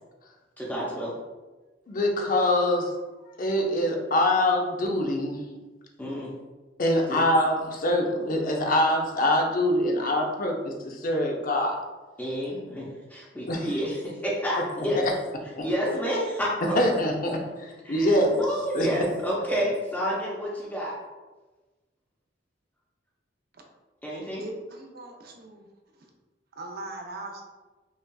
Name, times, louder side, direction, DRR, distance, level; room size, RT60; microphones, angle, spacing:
voice 1, 0.6-1.1 6.0-6.3 7.1-7.2 12.2-15.1 15.6-17.1 17.8-20.9 24.0-24.4, equal, 10° left, -6 dB, 0.6 m, -29 dB
voice 2, 1.9-2.9 3.4-5.4 6.8-11.8 13.5-13.7 14.6-14.9 15.6-15.7 16.7-18.5 18.7-18.9, left 1 dB, 50° left, 1 dB, 0.6 m, -24 dB
voice 3, 24.2-25.7 25.9-26.1 26.5-27.4, right 2 dB, 55° right, 2 dB, 0.6 m, -40 dB
5.4 x 2.4 x 2.3 m, 1.2 s
head